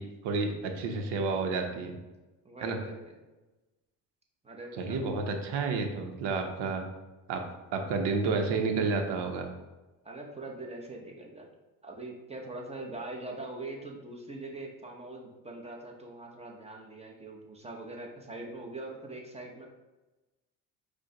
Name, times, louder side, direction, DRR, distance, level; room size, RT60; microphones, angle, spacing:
voice 1, 0.0-2.0 2.6-2.8 4.8-6.8 7.3-7.4 7.7-9.5, right 4 dB, 70° right, 4 dB, 0.8 m, -30 dB
voice 2, 2.4-3.2 4.4-5.0 10.0-11.5 11.8-19.7, right 2 dB, 15° right, -1 dB, 0.9 m, -42 dB
4.9 x 2.2 x 3.8 m, 1.1 s
supercardioid pair, 80°, 43 cm